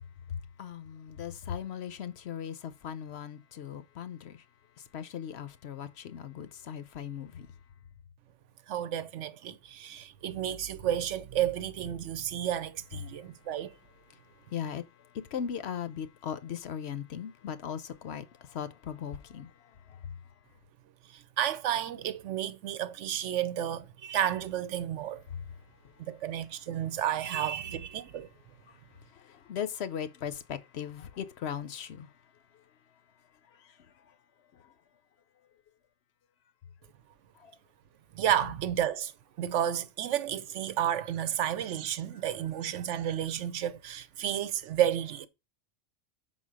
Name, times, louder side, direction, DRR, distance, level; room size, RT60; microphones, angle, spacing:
voice 1, 0.6-4.4 4.9-7.5 14.5-14.8 15.3-19.5 29.1-32.1 37.4-37.5, left 8 dB, 65° left, 0.9 m, -38 dB
voice 2, 8.7-13.7 21.1-25.2 26.0-28.3 38.1-39.1 39.4-45.3, right 10 dB, 75° right, 1.0 m, -31 dB
5.7 x 4.0 x 6.2 m
omnidirectional pair, 1.3 m